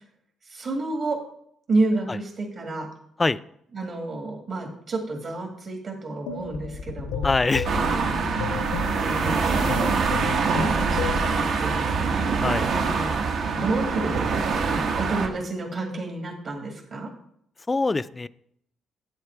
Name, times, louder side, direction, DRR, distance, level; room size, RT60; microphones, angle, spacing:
voice 1, 0.5-1.2 1.7-2.9 3.7-7.3 8.9-12.3 12.7-13.1 13.5-14.2 14.6-17.1, right 2 dB, 55° right, 1 dB, 1.9 m, -30 dB
sound 1, 6.3-11.4, left 6 dB, 85° left, 0.7 m, -33 dB
voice 2, 7.2-7.7 12.4-12.7 17.7-18.3, left 3 dB, 25° left, 16 dB, 0.3 m, -23 dB
sound 2, 7.6-15.3, right 5 dB, 70° right, 1.1 m, -24 dB
8.1 x 8.1 x 4.5 m, 0.70 s
cardioid pair, 90°, 0 cm